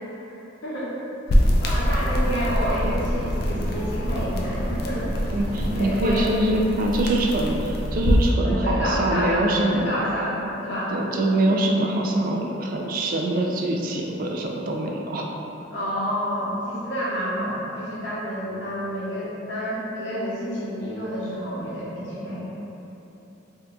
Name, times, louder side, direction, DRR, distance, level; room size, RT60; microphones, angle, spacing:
voice 1, 0.6-0.9 1.6-5.1 5.7-6.3 8.4-10.9 15.7-22.6, equal, 75° left, -8 dB, 0.9 m, -29 dB
sound 1, 1.3-8.3, equal, 55° left, 0.4 m, -24 dB
voice 2, 5.3-9.9 10.9-15.3, right 1 dB, 50° right, 0 dB, 0.3 m, -24 dB
2.7 x 2.3 x 3.6 m, 3.0 s
head